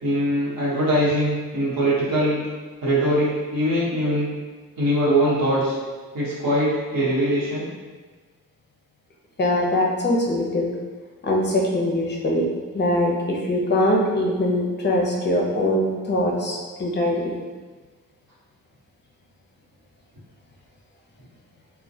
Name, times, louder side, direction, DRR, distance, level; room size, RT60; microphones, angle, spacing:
voice 1, 0.0-2.4 2.8-4.2 4.8-5.8 6.1-7.7, equal, 75° right, -9 dB, 1.1 m, -22 dB
voice 2, 9.4-10.7 11.2-12.5 12.7-17.3, left 1 dB, 30° left, -1 dB, 0.4 m, -22 dB
2.2 x 2.1 x 2.6 m, 1.3 s
wide cardioid pair, 105°, 35 cm